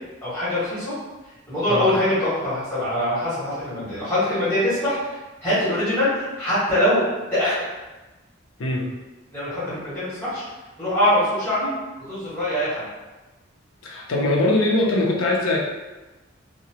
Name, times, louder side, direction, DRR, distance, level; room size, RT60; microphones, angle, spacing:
voice 1, 0.2-0.9 1.5-7.0 7.3-7.6 9.3-10.4 10.8-11.7 12.1-12.9, left 1 dB, 10° left, -13 dB, 1.5 m, -23 dB
voice 2, 13.8-15.6, left 2 dB, 85° left, -1 dB, 0.5 m, -21 dB
2.8 x 2.1 x 2.8 m, 1.1 s
head